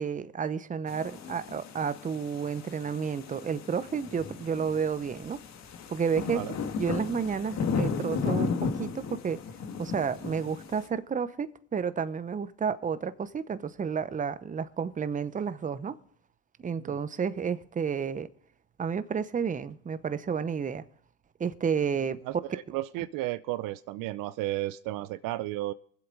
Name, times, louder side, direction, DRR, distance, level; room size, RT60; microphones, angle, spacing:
voice 1, 0.0-5.4 5.9-6.4 6.8-9.4 9.8-16.0 16.6-18.3 18.8-20.8 21.4-22.2, right 6 dB, 20° right, 0.8 m, -31 dB
sound 1, 0.9-10.9, left 5 dB, 45° left, 1.8 m, -35 dB
voice 2, 22.3-25.7, right 16 dB, 60° right, 0.6 m, -33 dB
24.0 x 8.0 x 4.0 m
supercardioid pair, 90°, 37 cm